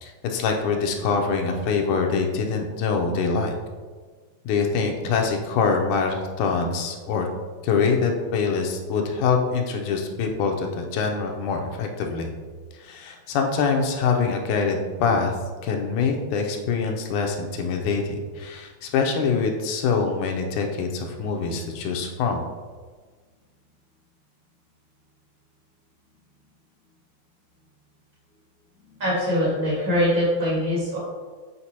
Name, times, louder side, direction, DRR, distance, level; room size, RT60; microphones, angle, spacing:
voice 1, 0.0-3.5 4.5-7.3 7.6-12.3 12.8-15.4 15.6-22.4, left 5 dB, 85° left, 3 dB, 2.2 m, -24 dB
voice 2, 29.0-31.0, equal, 40° right, -7 dB, 2.4 m, -22 dB
8.0 x 4.5 x 2.9 m, 1.4 s
omnidirectional pair, 3.5 m